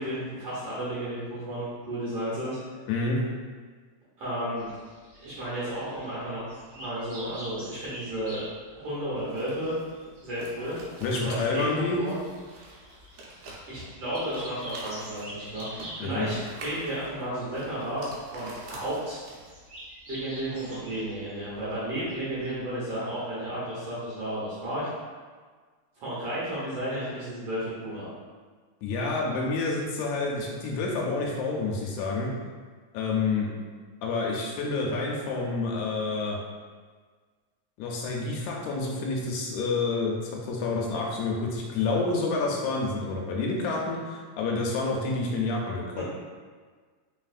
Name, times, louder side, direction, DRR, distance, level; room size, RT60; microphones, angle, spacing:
voice 1, 0.0-2.6 4.2-4.7 5.2-8.4 8.8-9.7 10.2-10.8 11.2-12.2 13.7-16.4 16.6-18.0 18.3-19.2 20.1-24.9 26.0-28.1 46.0-46.1, right 1 dB, 60° right, -10 dB, 1.9 m, -33 dB
voice 2, 2.9-3.2 11.0-12.0 16.0-16.3 28.8-32.3 32.9-33.5 34.0-36.4 37.8-46.0, left 3 dB, 80° left, -2 dB, 1.8 m, -28 dB
sound 1, 4.6-22.7, equal, 40° right, 1.6 m, -47 dB
sound 2, 9.2-19.7, right 1 dB, 80° right, 2.1 m, -46 dB
4.1 x 3.9 x 2.4 m, 1.5 s
omnidirectional pair, 3.4 m